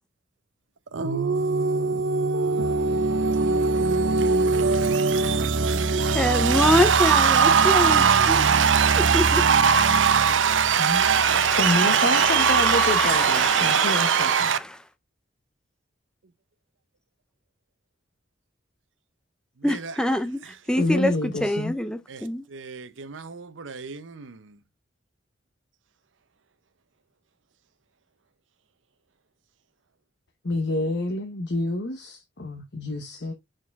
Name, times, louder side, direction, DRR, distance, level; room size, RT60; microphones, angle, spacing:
voice 1, 0.9-14.6 22.1-22.2 22.5-24.4, right 6 dB, 85° right, 0.7 m, -21 dB
voice 2, 6.1-8.5 9.1-9.4 10.8-14.8 19.6-22.5, left 1 dB, 5° left, 0.6 m, -26 dB
voice 3, 10.7-11.0 11.6-14.5 20.7-21.7 30.4-33.3, left 2 dB, 60° left, 0.9 m, -28 dB
6.3 x 4.3 x 3.5 m
head